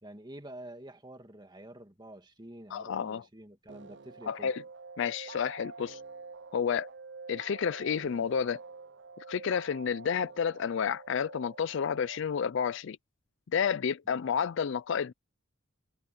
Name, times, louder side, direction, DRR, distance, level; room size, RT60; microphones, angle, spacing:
voice 1, 0.0-4.5, right 1 dB, 20° right, 1.9 m, -48 dB
voice 2, 2.7-3.2 4.3-4.6 5.0-6.0 6.5-6.9 7.3-8.6 9.3-13.0 13.5-15.1, left 7 dB, 60° left, 0.4 m, -30 dB
sound 1, 3.7-12.2, right 4 dB, 55° right, 0.6 m, -47 dB
head